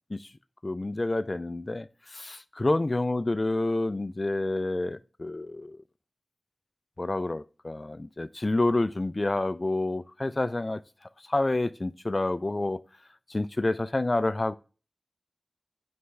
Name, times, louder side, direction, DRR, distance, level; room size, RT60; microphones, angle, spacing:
voice 1, 0.6-1.9 2.1-5.8 7.0-10.8 11.3-12.8 13.3-14.5, left 2 dB, 40° left, 0.3 m, -28 dB
9.4 x 3.5 x 3.3 m
wide cardioid pair, 50°, 0 cm